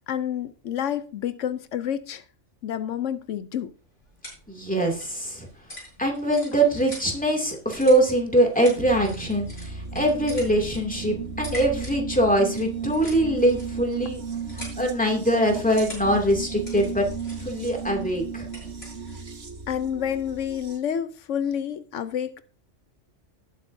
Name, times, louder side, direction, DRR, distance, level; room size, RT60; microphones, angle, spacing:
voice 1, 0.1-2.2 2.6-3.7 19.7-22.4, left 9 dB, 85° left, 1.1 m, -29 dB
sound 1, 3.6-19.5, equal, 55° left, 6.9 m, -45 dB
voice 2, 4.5-5.5 6.0-14.2 14.5-17.1 17.4-18.5, right 1 dB, 5° left, 2.5 m, -23 dB
sound 2, 8.8-20.8, right 5 dB, 75° right, 1.9 m, -35 dB
19.0 x 7.6 x 2.7 m
omnidirectional pair, 1.2 m